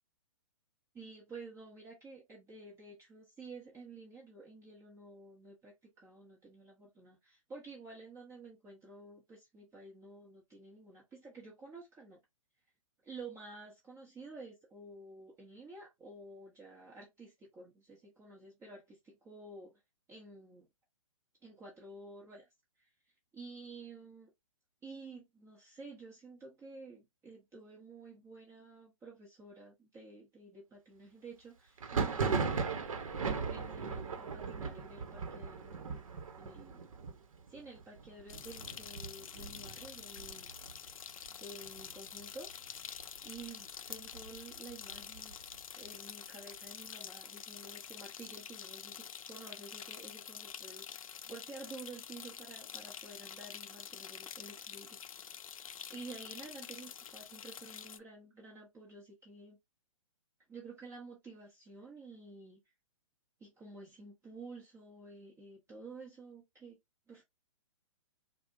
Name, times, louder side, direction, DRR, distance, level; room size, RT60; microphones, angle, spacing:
voice 1, 0.9-12.2 13.0-19.7 20.1-20.7 21.4-22.4 22.8-22.9 23.3-24.3 24.8-32.8 33.5-36.0 36.4-36.8 37.5-40.5 41.4-42.9 43.2-45.4 45.8-55.0 55.9-59.6 60.5-62.6 63.4-66.8 67.1-67.2, right 3 dB, 15° right, 1.1 m, -51 dB
Thunder, 31.8-41.3 41.6-42.2 42.5-43.5 43.9-45.6, right 5 dB, 80° right, 1.0 m, -38 dB
sound 1, 38.3-58.0, left 8 dB, 80° left, 0.4 m, -47 dB
4.8 x 2.3 x 2.5 m
hypercardioid pair, 135°, 17 cm